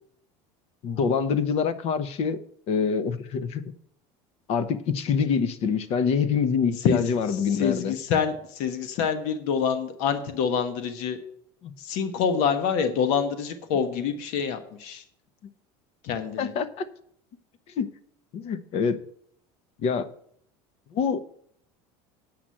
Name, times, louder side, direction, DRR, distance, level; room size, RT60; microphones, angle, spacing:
voice 1, 0.8-2.4 2.7-3.6 4.5-7.9 11.6-11.7 16.4-16.9 17.8-17.9 18.3-19.0 19.8-20.1 20.9-21.2, left 6 dB, 50° left, 0.9 m, -25 dB
voice 2, 6.8-11.2 11.8-15.0 16.0-16.5, left 7 dB, 70° left, 1.3 m, -26 dB
8.8 x 5.9 x 7.6 m
supercardioid pair, 130°, 13 cm